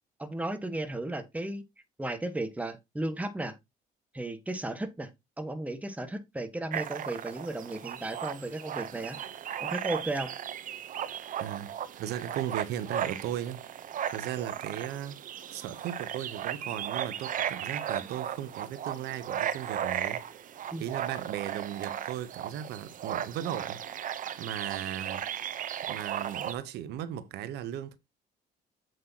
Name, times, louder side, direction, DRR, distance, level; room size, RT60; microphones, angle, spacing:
voice 1, 0.2-1.6 2.0-3.6 4.1-5.1 5.4-9.2 9.6-10.3 20.7-20.9, right 1 dB, 10° right, 1.6 m, -35 dB
sound 1, 6.7-26.5, right 10 dB, 50° right, 0.8 m, -36 dB
voice 2, 11.4-13.6 14.1-15.2 15.5-20.2 20.7-23.8 24.4-25.3 25.9-28.0, right 11 dB, 80° right, 1.1 m, -37 dB
7.9 x 7.7 x 2.9 m
cardioid pair, 110°, 17 cm